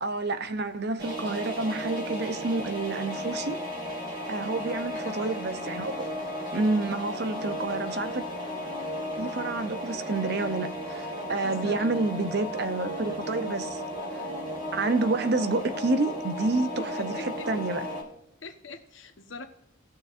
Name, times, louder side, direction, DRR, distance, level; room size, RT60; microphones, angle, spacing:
voice 1, 0.0-3.6 4.3-6.0 6.5-8.3 9.2-13.8 14.1-14.2 14.7-17.8, right 3 dB, 50° right, 0.7 m, -29 dB
sound 1, 1.0-18.0, equal, 25° right, 2.8 m, -35 dB
voice 2, 4.9-6.1 11.3-11.9 16.8-17.0 17.4-17.5 18.4-19.4, left 3 dB, 65° left, 1.3 m, -44 dB
18.5 x 6.6 x 2.6 m
head